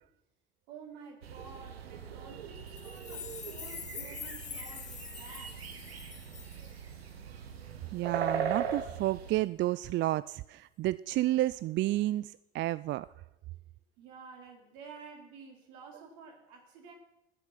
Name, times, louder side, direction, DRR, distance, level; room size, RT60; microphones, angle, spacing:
voice 1, 0.7-5.8 14.0-16.9, right 5 dB, 65° right, 1 dB, 4.2 m, -51 dB
sound 1, 1.2-9.4, right 7 dB, 85° right, 1.2 m, -39 dB
sound 2, 2.7-7.1, left 7 dB, 25° left, 0.7 m, -45 dB
voice 2, 7.9-13.1, right 16 dB, 40° right, 17 dB, 0.4 m, -31 dB
19.5 x 7.2 x 6.0 m, 0.92 s
hypercardioid pair, 70°, 30 cm